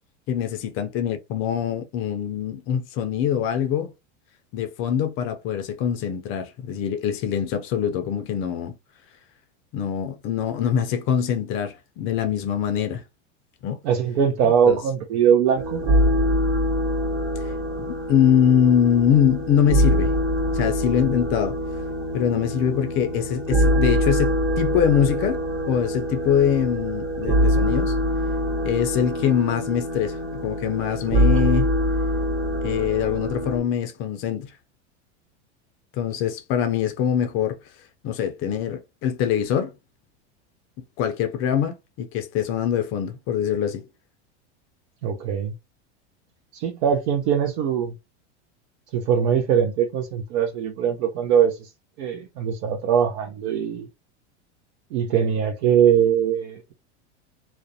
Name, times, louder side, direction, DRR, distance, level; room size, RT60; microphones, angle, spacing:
voice 1, 0.3-3.9 4.5-8.7 9.7-13.0 13.6-13.8 14.4-14.8 17.8-20.1 20.5-21.6 22.1-25.4 25.7-28.0 28.6-31.7 32.6-34.5 36.0-37.6 38.0-39.7 41.0-43.8, left 8 dB, 40° left, 0.4 m, -23 dB
voice 2, 13.8-15.8 45.0-45.5 46.5-47.9 48.9-51.7 52.0-53.9 54.9-56.7, right 8 dB, 65° right, 0.6 m, -21 dB
sound 1, 15.6-33.6, equal, 35° right, 1.1 m, -24 dB
2.4 x 2.0 x 2.6 m
supercardioid pair, 125°, 35 cm